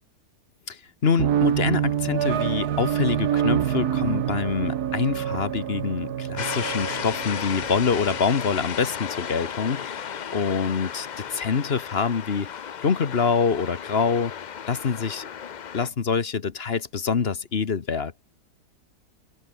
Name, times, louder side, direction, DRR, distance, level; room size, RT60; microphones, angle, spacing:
voice 1, 0.7-12.5 12.8-14.3 14.7-15.3 15.7-18.1, left 5 dB, 40° left, 1.3 m, -25 dB
sound 1, 1.2-8.5, right 10 dB, 80° right, 1.6 m, -26 dB
sound 2, 6.4-15.9, left 8 dB, 75° left, 0.4 m, -34 dB
omnidirectional pair, 1.7 m